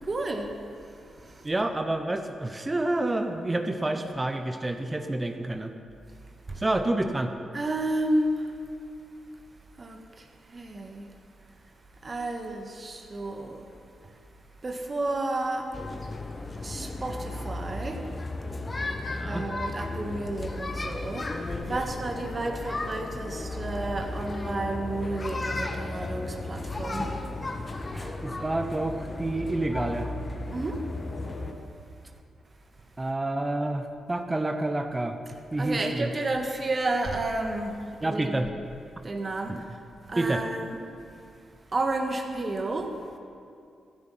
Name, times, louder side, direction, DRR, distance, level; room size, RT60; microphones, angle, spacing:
voice 1, 0.0-0.5 0.8-1.5 6.5-6.6 7.5-8.5 9.8-11.1 12.0-13.7 14.6-15.7 16.6-18.0 19.2-27.1 30.5-30.8 35.6-38.4 39.0-39.8 40.1-40.8 41.7-43.0, right 2 dB, 40° right, 4 dB, 1.7 m, -31 dB
voice 2, 1.4-5.7 6.6-7.3 19.0-19.5 25.5-25.7 27.9-30.1 33.0-35.2 35.5-36.1 38.0-38.5 39.5-39.6 40.2-40.4, right 2 dB, 25° right, 6 dB, 1.0 m, -29 dB
sound 1, 15.7-31.5, left 2 dB, 35° left, 1.5 m, -34 dB
15.5 x 9.9 x 5.8 m, 2.4 s
hypercardioid pair, 40°, 0 cm